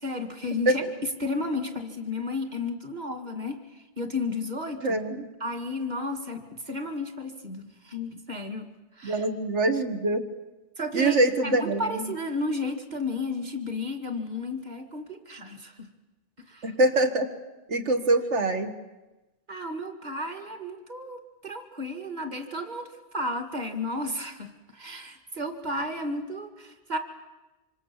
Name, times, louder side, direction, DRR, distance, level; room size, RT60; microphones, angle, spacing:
voice 1, 0.0-0.8 1.2-4.9 5.4-8.7 9.0-9.2 10.8-11.2 11.4-15.9 16.4-16.7 19.5-27.0, left 2 dB, 40° right, 6 dB, 2.2 m, -33 dB
voice 2, 4.8-5.3 9.0-10.2 10.9-12.1 16.6-17.3 17.7-18.7, right 2 dB, 85° right, 5 dB, 1.9 m, -24 dB
26.0 x 26.0 x 7.3 m, 1.1 s
omnidirectional pair, 1.2 m